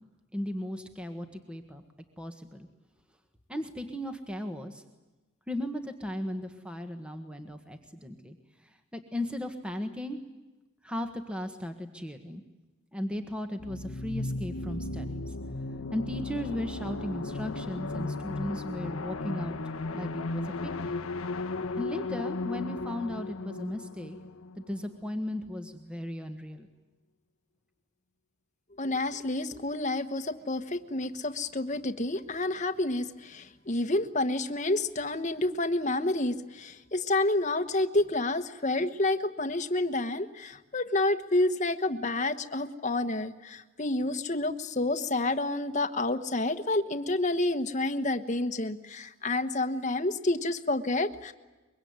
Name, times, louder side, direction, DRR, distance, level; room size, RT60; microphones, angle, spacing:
voice 1, 0.3-1.8 2.2-2.7 3.5-4.8 5.5-8.4 8.6-10.2 10.8-12.4 12.9-15.3 15.9-19.6 19.9-20.9 21.8-24.2 24.6-26.7, left 1 dB, 5° right, 6 dB, 1.5 m, -36 dB
sound 1, 13.6-25.1, left 2 dB, 75° left, 1.1 m, -35 dB
voice 2, 28.8-51.3, left 2 dB, 35° left, 8 dB, 1.3 m, -29 dB
24.0 x 23.0 x 9.6 m, 1.1 s
head